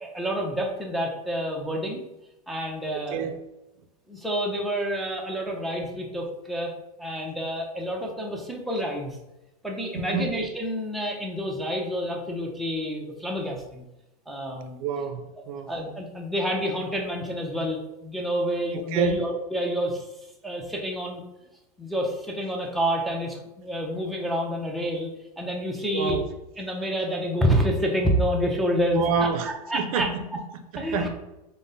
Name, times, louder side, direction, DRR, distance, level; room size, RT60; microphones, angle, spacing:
voice 1, 0.0-2.0 2.5-3.3 4.1-6.7 7.0-9.2 9.6-13.8 14.3-14.8 15.4-20.1 20.4-21.2 21.8-25.1 25.4-26.2 26.6-30.1 30.7-31.1, equal, ahead, -1 dB, 0.4 m, -28 dB
voice 2, 2.9-3.4 10.1-10.3 14.8-15.7 18.7-19.1 25.9-26.2 28.9-31.1, right 5 dB, 60° right, 7 dB, 0.5 m, -28 dB
4.9 x 2.0 x 2.7 m, 0.95 s
hypercardioid pair, 120°, 20 cm